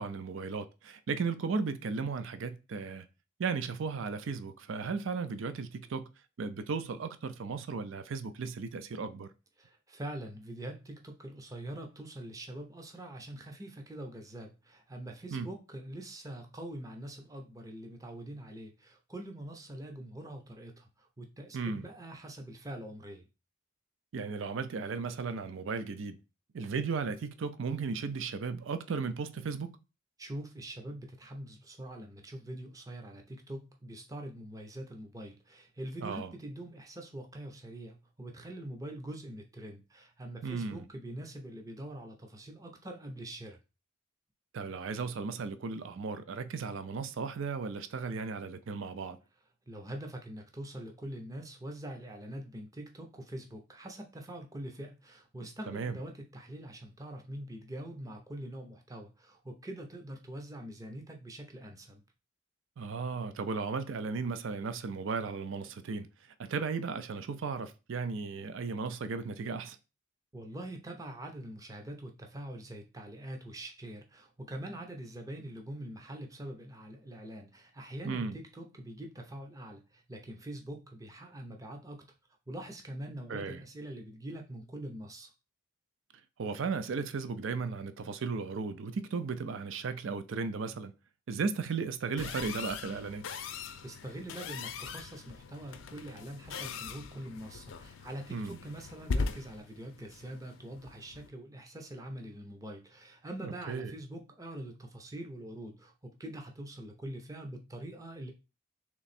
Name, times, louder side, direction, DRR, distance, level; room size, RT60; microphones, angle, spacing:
voice 1, 0.0-3.1 3.4-6.1 6.4-9.3 15.3-15.5 21.5-21.9 24.1-26.2 26.5-29.7 36.0-36.3 40.4-40.8 44.5-49.2 55.7-56.0 62.8-66.1 66.4-69.8 78.0-78.4 83.3-83.6 86.4-90.9 91.3-93.2 98.3-98.6 103.4-103.9, right 4 dB, 70° right, 0.4 m, -35 dB
voice 2, 9.6-23.3 30.2-43.6 49.7-62.0 70.3-82.1 82.5-85.3 93.8-108.3, right 1 dB, 15° right, 0.6 m, -44 dB
sound 1, 92.2-101.3, left 4 dB, 70° left, 0.5 m, -40 dB
3.4 x 3.0 x 4.1 m
head